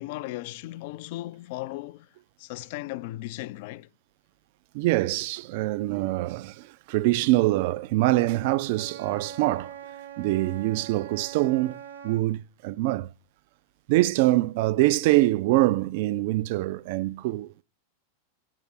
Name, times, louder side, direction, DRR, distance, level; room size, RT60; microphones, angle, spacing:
voice 1, 0.0-2.1 2.4-3.9, left 17 dB, 50° left, 0.3 m, -36 dB
voice 2, 4.7-9.7 10.2-11.8 12.0-13.1 13.9-17.6, right 17 dB, 50° right, 0.3 m, -24 dB
Wind instrument woodwind instrument, 8.7-12.3, right 8 dB, 70° right, 1.1 m, -42 dB
7.6 x 5.0 x 6.2 m
figure-of-eight pair, 90°, 0 cm